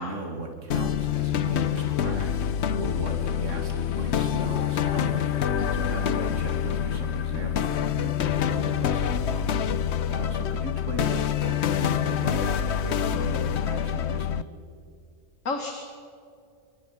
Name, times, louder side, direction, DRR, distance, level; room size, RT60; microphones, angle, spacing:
voice 1, 0.0-5.3 5.7-9.6 10.1-14.5, right 2 dB, 75° right, 3 dB, 2.8 m, -37 dB
sound 1, 0.7-14.4, left 9 dB, 60° left, 1.0 m, -26 dB
voice 2, 5.6-6.1 15.5-15.7, left 3 dB, 90° left, 3 dB, 2.3 m, -33 dB
26.5 x 22.0 x 5.8 m, 2.4 s
omnidirectional pair, 1.3 m